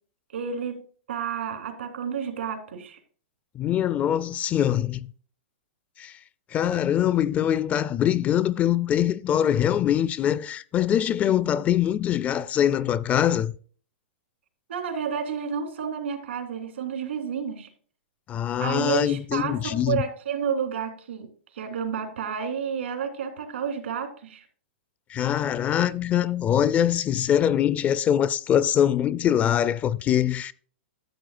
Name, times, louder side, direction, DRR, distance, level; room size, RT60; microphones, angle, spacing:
voice 1, 0.3-3.0 14.7-17.7 18.6-21.3 21.5-24.4, right 7 dB, 85° right, 3.0 m, -30 dB
voice 2, 3.6-5.1 6.0-6.1 6.5-13.5 18.3-20.0 25.1-30.5, left 10 dB, 25° left, 0.4 m, -23 dB
13.0 x 7.4 x 2.5 m
hypercardioid pair, 140°, 6 cm